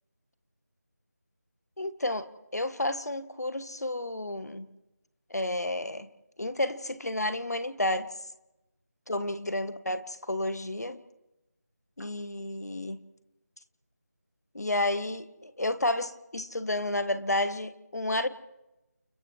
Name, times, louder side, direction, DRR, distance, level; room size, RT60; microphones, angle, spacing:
voice 1, 1.8-4.7 5.3-6.1 6.4-8.1 9.1-11.0 12.0-13.0 14.5-18.3, left 1 dB, 70° left, 1.3 m, -31 dB
29.5 x 28.5 x 3.3 m
figure-of-eight pair, 165°, 9 cm